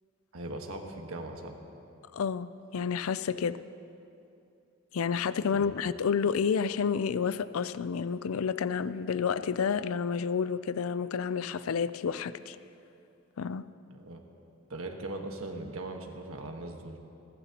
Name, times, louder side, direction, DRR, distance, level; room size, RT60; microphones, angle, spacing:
voice 1, 0.3-1.6 5.5-5.7 13.9-14.2 14.7-17.0, right 2 dB, 80° right, 3 dB, 1.4 m, -39 dB
voice 2, 2.1-3.6 4.9-12.6 13.4-13.6, left 6 dB, 85° left, 15 dB, 0.4 m, -30 dB
29.5 x 12.0 x 2.9 m, 2.7 s
head